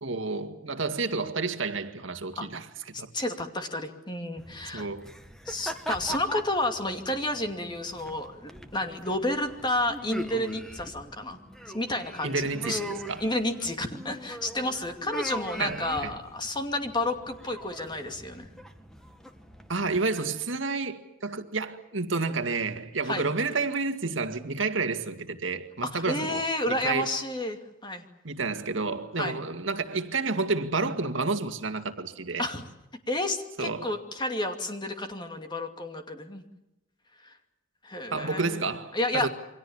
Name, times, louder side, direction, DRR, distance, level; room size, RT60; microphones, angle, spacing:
voice 1, 0.0-3.1 4.7-5.1 6.1-6.2 12.2-13.3 15.6-16.1 19.7-27.1 28.2-32.4 33.6-33.9 38.1-39.3, right 3 dB, 70° right, 2.1 m, -30 dB
voice 2, 3.1-4.9 5.5-11.4 11.7-12.8 13.2-18.5 23.1-23.2 25.9-28.0 29.2-29.3 32.4-32.6 33.1-36.4 37.2-37.4 37.8-38.6 38.9-39.3, left 1 dB, 20° left, 2.6 m, -31 dB
sound 1, 4.4-20.0, equal, 5° left, 1.9 m, -41 dB
29.0 x 24.0 x 7.3 m
head